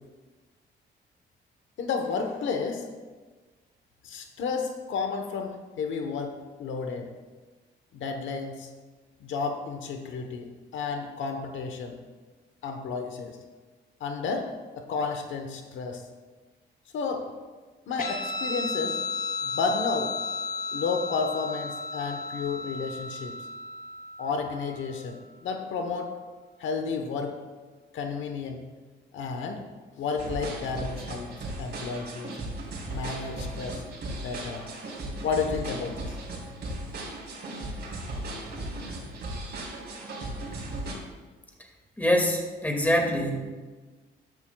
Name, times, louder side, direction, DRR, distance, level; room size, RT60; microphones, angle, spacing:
voice 1, 1.8-2.8 4.0-7.1 7.9-8.7 9.2-12.0 12.6-13.4 14.0-14.5 14.8-16.0 16.9-17.3 17.9-19.0 19.4-20.1 20.7-23.4 24.2-26.1 26.6-27.4 27.9-28.6 29.1-29.6 30.0-32.4 32.9-34.8 35.2-36.1, left 5 dB, 75° left, 5 dB, 1.1 m, -32 dB
Guitar, 18.0-24.9, left 3 dB, 45° left, 2.3 m, -34 dB
sound 1, 30.2-40.9, right 1 dB, 55° right, 3.5 m, -36 dB
voice 2, 42.0-43.5, equal, 10° left, 2 dB, 2.1 m, -25 dB
13.0 x 11.0 x 2.3 m, 1.3 s
cardioid pair, 90°, 20 cm